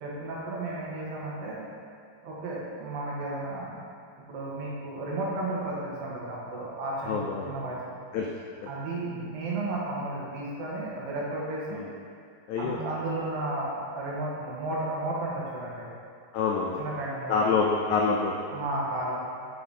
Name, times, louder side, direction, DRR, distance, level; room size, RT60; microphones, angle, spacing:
voice 1, 0.0-1.6 2.2-3.7 4.3-7.2 7.5-8.0 8.7-11.8 12.6-15.9 16.8-17.4 18.5-19.2, right 2 dB, 85° right, -5 dB, 2.8 m, -33 dB
voice 2, 7.1-7.5 8.1-8.3 8.6-8.7 11.7-11.9 12.5-12.8 16.3-16.8 17.3-18.3, left 5 dB, 90° left, -1 dB, 1.7 m, -26 dB
8.6 x 4.8 x 2.7 m, 2.4 s
omnidirectional pair, 4.0 m